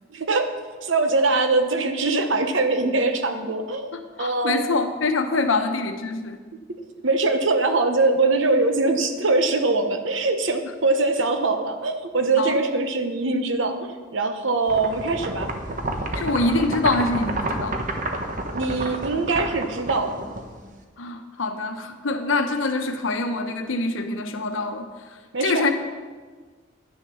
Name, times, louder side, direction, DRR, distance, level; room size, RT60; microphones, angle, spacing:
voice 1, 0.1-0.5 0.8-3.9 4.2-4.6 7.0-15.5 18.5-20.2 25.3-25.7, right 3 dB, 70° right, 7 dB, 1.0 m, -22 dB
voice 2, 3.9-6.4 12.4-12.6 16.1-17.8 21.0-24.9 25.4-25.7, left 3 dB, 75° left, 6 dB, 0.9 m, -25 dB
sound 1, 14.7-20.8, right 2 dB, 40° right, 0.9 m, -29 dB
9.7 x 7.0 x 6.2 m, 1.4 s
head